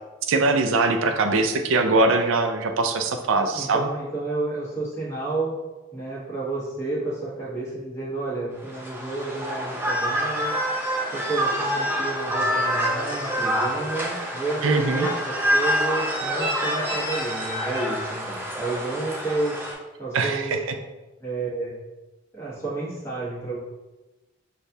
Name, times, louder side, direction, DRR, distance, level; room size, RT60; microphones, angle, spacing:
voice 1, 0.3-3.8 14.6-15.1 20.1-20.6, right 3 dB, 75° right, 5 dB, 0.4 m, -22 dB
voice 2, 3.5-5.5 5.9-10.5 11.1-19.6 20.0-20.6 21.2-21.7 22.3-23.6, right 3 dB, 15° left, -7 dB, 1.1 m, -31 dB
sound 1, 8.6-19.7, equal, 10° right, 0.5 m, -26 dB
6.4 x 2.3 x 2.7 m, 1.1 s
head